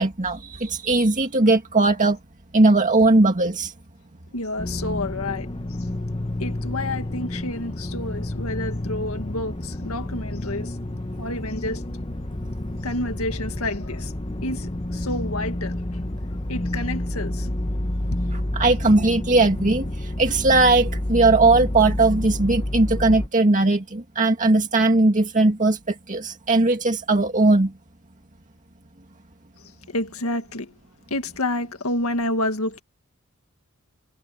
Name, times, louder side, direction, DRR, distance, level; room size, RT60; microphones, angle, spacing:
voice 1, 0.0-2.2 2.5-3.7 18.5-27.7, right 2 dB, 35° right, 1.9 m, -19 dB
voice 2, 4.3-5.5 6.4-10.8 11.2-11.8 12.8-14.1 14.4-15.8 16.5-17.5 29.6-30.7 31.1-32.8, left 1 dB, 85° left, 1.9 m, -29 dB
sound 1, 4.6-23.3, left 1 dB, 25° left, 1.1 m, -29 dB
head